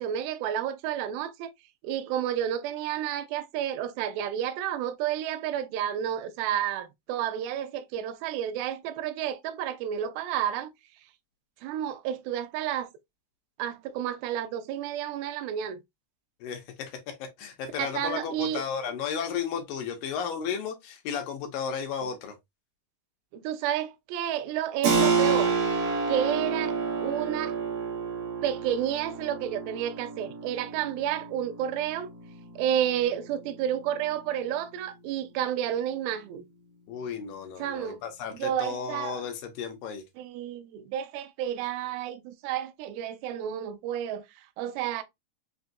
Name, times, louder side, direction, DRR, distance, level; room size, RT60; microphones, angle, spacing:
voice 1, 0.0-1.5 1.8-10.7 11.6-12.9 13.6-15.8 17.8-18.6 23.3-25.6 26.1-27.5 28.4-32.1 32.6-36.5 37.6-38.0 38.3-39.2 40.2-44.2 44.6-45.0, right 10 dB, 80° right, 2.3 m, -31 dB
voice 2, 16.4-22.4 36.9-40.0, left 7 dB, 75° left, 2.2 m, -34 dB
Keyboard (musical), 24.8-35.2, right 5 dB, 65° right, 1.7 m, -30 dB
5.8 x 2.3 x 2.5 m
omnidirectional pair, 4.5 m